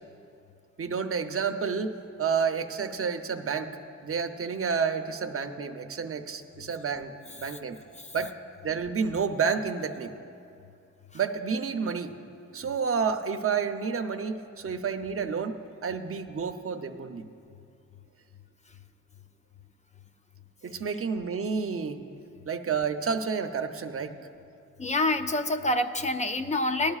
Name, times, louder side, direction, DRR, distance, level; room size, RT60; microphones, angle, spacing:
voice 1, 0.8-3.8 4.0-7.8 8.1-8.3 8.6-10.1 11.1-12.1 12.5-15.6 15.8-17.2 20.6-22.0 22.5-24.1, right 6 dB, 45° right, 7 dB, 0.6 m, -30 dB
voice 2, 24.8-27.0, left 2 dB, 25° left, 8 dB, 0.4 m, -27 dB
19.0 x 12.0 x 2.4 m, 2.5 s
wide cardioid pair, 115°, 31 cm